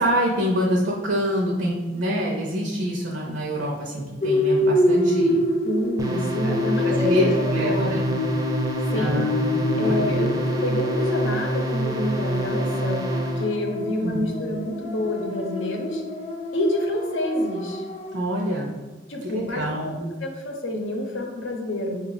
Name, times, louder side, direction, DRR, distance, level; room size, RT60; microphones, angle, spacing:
voice 1, 0.0-5.4 6.4-6.5 6.8-8.0 8.9-9.5 9.7-10.3 14.0-14.3 18.1-18.7 19.3-20.0, equal, 70° right, -1 dB, 0.6 m, -26 dB
sound 1, 4.2-18.4, left 1 dB, 40° left, 0.4 m, -27 dB
voice 2, 5.6-8.0 8.9-9.3 9.8-16.0 16.5-17.8 19.1-22.0, left 1 dB, 85° left, 2 dB, 0.7 m, -28 dB
sound 2, 6.0-13.5, right 1 dB, 20° right, 0.5 m, -26 dB
5.0 x 2.3 x 3.9 m, 1.2 s
head